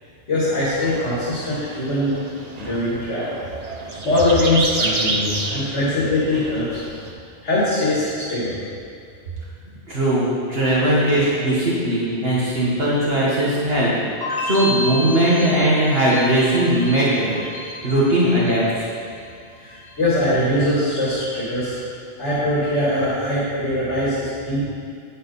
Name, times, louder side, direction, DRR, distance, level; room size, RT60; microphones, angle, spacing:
voice 1, 0.3-2.2 2.6-3.3 3.9-7.0 7.4-8.6 19.6-21.8 22.2-24.6, left 1 dB, 70° left, -11 dB, 2.8 m, -22 dB
sound 1, 0.8-7.1, right 3 dB, 40° right, 0.8 m, -29 dB
voice 2, 9.9-13.9 14.4-17.4 17.8-18.9, right 1 dB, 55° right, -8 dB, 2.0 m, -19 dB
sound 2, 14.2-19.2 19.5-20.2, left 1 dB, 20° left, 2.0 m, -31 dB
9.7 x 9.4 x 4.2 m, 2.3 s
omnidirectional pair, 1.2 m